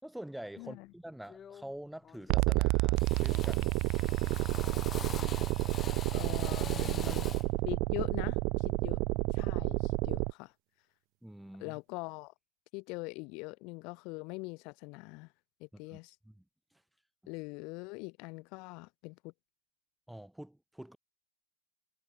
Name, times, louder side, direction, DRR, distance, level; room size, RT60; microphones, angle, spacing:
voice 1, 0.0-3.8 6.8-7.3 11.2-11.8 15.7-16.4 16.7-16.8 20.1-21.0, right 1 dB, ahead, 7.0 m, -46 dB
Drill, 0.6-0.9 1.3-1.8 2.0-2.6 2.9-7.6, left 8 dB, 20° left, 2.9 m, -45 dB
sound 1, 2.3-10.3, right 26 dB, 45° right, 1.4 m, -30 dB
voice 2, 6.1-7.3 7.6-9.0 9.3-10.5 11.6-12.3 12.7-15.3 15.6-16.2 17.3-19.3, left 28 dB, 45° left, 1.4 m, -42 dB
hypercardioid pair, 125°, 0 cm